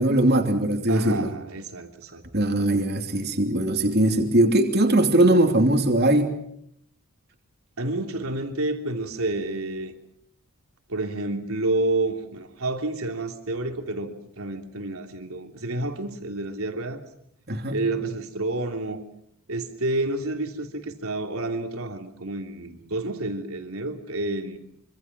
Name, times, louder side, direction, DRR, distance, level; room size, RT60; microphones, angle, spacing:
voice 1, 0.0-1.3 2.3-6.3 17.5-17.8, right 1 dB, 45° right, 3 dB, 2.9 m, -20 dB
voice 2, 0.9-2.2 7.8-9.9 10.9-17.0 17.7-19.0 19.5-24.6, right 2 dB, 75° right, 4 dB, 3.2 m, -29 dB
26.0 x 25.5 x 6.1 m, 0.74 s
head